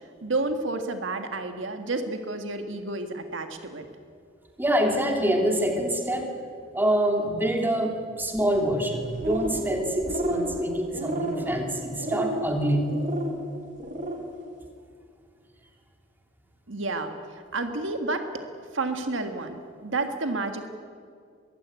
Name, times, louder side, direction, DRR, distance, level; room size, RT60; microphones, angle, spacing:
voice 1, 0.0-3.8 16.7-18.3 18.7-20.7, right 3 dB, 75° right, 6 dB, 1.7 m, -30 dB
voice 2, 4.6-6.3 6.7-12.9, right 1 dB, 10° right, 2 dB, 2.8 m, -25 dB
sound 1, 9.0-9.7 10.0-10.5 10.9-11.5 12.0-12.5 12.9-13.3 13.8-14.2, right 1 dB, 45° right, 3.6 m, -31 dB
22.5 x 15.5 x 9.5 m, 2.2 s
head